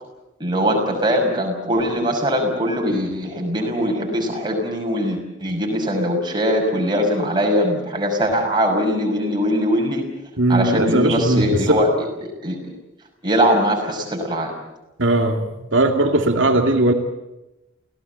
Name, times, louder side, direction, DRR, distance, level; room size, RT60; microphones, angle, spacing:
voice 1, 0.4-10.1 10.5-12.6 13.2-14.5, equal, 25° right, 1 dB, 6.1 m, -21 dB
voice 2, 10.4-11.8 15.0-16.9, right 1 dB, 70° right, 4 dB, 2.4 m, -18 dB
29.0 x 17.5 x 8.2 m, 0.96 s
head